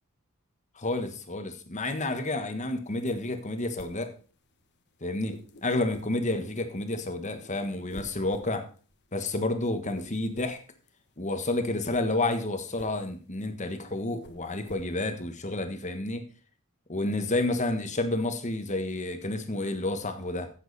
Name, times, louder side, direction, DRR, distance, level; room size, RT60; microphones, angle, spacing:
voice 1, 0.8-4.1 5.0-8.6 9.1-10.6 11.2-16.2 16.9-20.5, left 2 dB, 35° left, 8 dB, 1.4 m, -30 dB
sound 1, 2.9-4.8 5.1-6.9 7.1-14.8, left 1 dB, 50° left, 1.3 m, -50 dB
15.0 x 7.5 x 4.2 m, 0.39 s
head